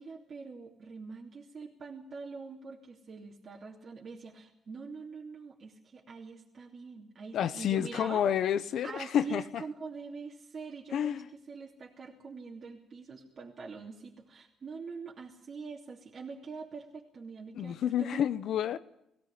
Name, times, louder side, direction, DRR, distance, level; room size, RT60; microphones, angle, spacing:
voice 1, 0.0-8.3 8.8-11.2 11.5-18.2, right 4 dB, 45° right, -2 dB, 2.9 m, -44 dB
voice 2, 7.3-9.6 10.9-11.3 17.5-18.8, left 9 dB, 70° left, 14 dB, 1.0 m, -29 dB
19.0 x 16.5 x 8.4 m, 0.81 s
cardioid pair, 90°, 0 cm